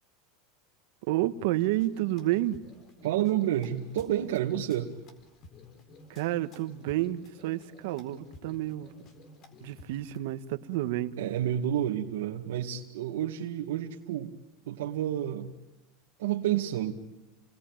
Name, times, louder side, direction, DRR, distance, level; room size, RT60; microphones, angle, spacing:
voice 1, 1.1-2.6 6.1-8.9 9.6-11.2, right 15 dB, 70° right, 10 dB, 1.6 m, -30 dB
sound 1, 1.6-10.2, left 2 dB, 35° left, 4.1 m, -52 dB
voice 2, 3.0-4.9 11.2-14.3 14.7-15.5 16.2-16.9, right 11 dB, 85° right, 0 dB, 2.0 m, -29 dB
29.5 x 20.5 x 9.0 m, 1.0 s
supercardioid pair, 145°, 0 cm